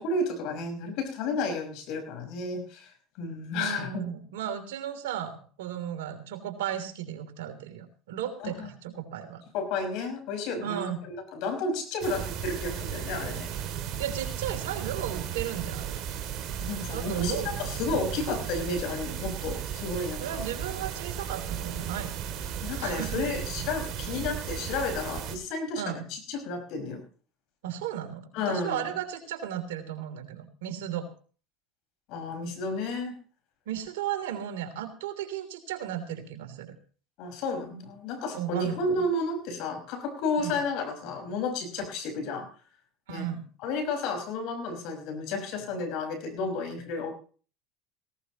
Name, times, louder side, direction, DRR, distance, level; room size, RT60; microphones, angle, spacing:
voice 1, 0.0-2.9 3.2-4.0 8.4-8.7 9.5-13.5 16.6-20.4 22.6-27.0 28.3-28.8 32.1-33.1 37.2-42.5 43.1-43.3 43.6-47.1, left 3 dB, 65° left, 6 dB, 5.4 m, -32 dB
voice 2, 3.5-9.4 10.6-11.0 14.0-16.0 16.9-17.6 20.2-23.2 25.8-26.1 27.6-31.1 33.7-36.7 38.3-39.0 40.4-40.5 43.1-43.4, right 10 dB, 80° right, 6 dB, 3.2 m, -35 dB
sound 1, 12.0-25.4, right 9 dB, 50° right, 2.8 m, -35 dB
18.0 x 17.0 x 3.0 m, 0.40 s
hypercardioid pair, 85°, 0 cm